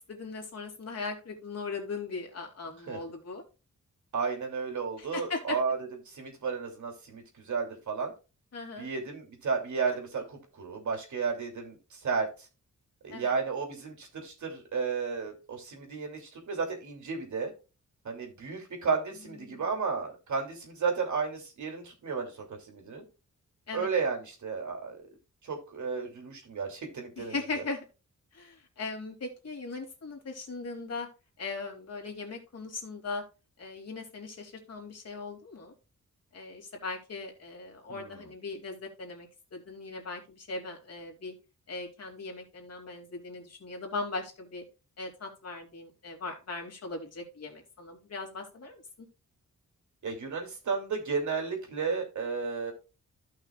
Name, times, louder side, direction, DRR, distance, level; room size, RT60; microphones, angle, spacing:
voice 1, 0.0-3.4 5.0-5.6 8.5-8.9 13.1-13.3 19.4-19.7 23.7-23.9 27.2-27.8 28.3-31.1 31.4-33.2 33.6-35.7 36.3-41.3 41.7-44.6 45.0-48.8, left 3 dB, 55° left, 1 dB, 2.9 m, -39 dB
voice 2, 4.1-5.8 6.0-8.1 8.8-12.3 13.0-17.5 18.0-23.0 23.7-25.1 25.4-27.6 37.9-38.2 50.0-52.7, right 5 dB, 65° right, 2 dB, 3.0 m, -33 dB
15.5 x 5.9 x 2.4 m, 0.31 s
wide cardioid pair, 165°, 31 cm